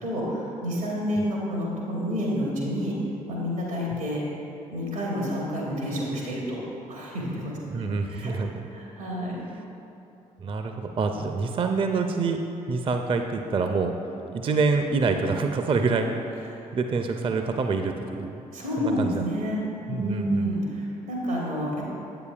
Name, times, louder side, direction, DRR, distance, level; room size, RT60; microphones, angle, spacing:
voice 1, 0.0-2.9 3.3-4.2 4.7-6.6 6.9-8.3 8.7-9.5 16.5-16.6 18.5-19.6 19.9-21.8, equal, 85° right, -3 dB, 1.3 m, -29 dB
voice 2, 7.7-8.6 10.4-12.4 12.7-13.9 14.3-16.2 16.7-18.4 18.8-19.2 19.9-20.5, right 4 dB, 30° right, 5 dB, 0.4 m, -26 dB
8.1 x 6.8 x 2.4 m, 2.8 s
figure-of-eight pair, 40°, 18 cm